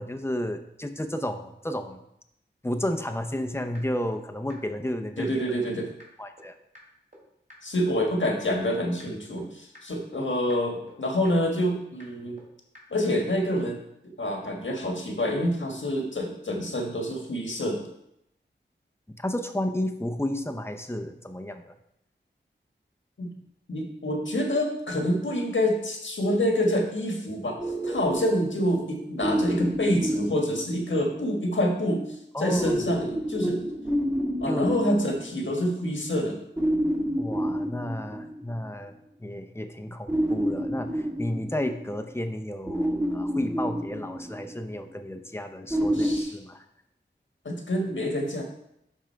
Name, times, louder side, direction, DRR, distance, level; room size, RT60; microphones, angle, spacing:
voice 1, 0.0-2.0 2.6-5.3 6.2-6.5 19.1-21.7 32.3-32.7 34.5-34.6 37.2-38.9 39.2-46.6, left 1 dB, 10° left, 6 dB, 0.7 m, -32 dB
sound 1, 3.0-3.1 3.4-3.5 3.7-3.8 4.1-4.2 4.5-4.6 4.9-5.0 5.2-5.3 5.6-5.7 6.0-6.1 6.4-6.5 6.7-6.8 7.1-7.2 7.5-7.6 7.9-8.0 8.2-8.3 8.6-8.7 9.0-9.1 9.4-9.5 9.7-9.8 10.1-10.2 10.5-10.6 10.9-11.0 11.2-11.3 11.6-11.7 12.0-12.1 12.4-12.5 12.7-12.8, equal, 40° right, 2.7 m, -49 dB
voice 2, 5.2-5.9 7.6-12.4 12.9-13.8 14.2-17.9 23.2-23.3 23.7-27.6 27.8-32.1 32.4-33.6 34.4-36.4 45.9-46.3 47.4-48.4, equal, 75° left, 1 dB, 1.5 m, -27 dB
sound 2, 27.6-31.3 32.6-35.9 36.6-38.7 40.1-42.2 42.7-44.7 45.7-46.2, equal, 15° right, 1.5 m, -29 dB
11.0 x 3.7 x 4.5 m, 0.78 s
wide cardioid pair, 75°, 20 cm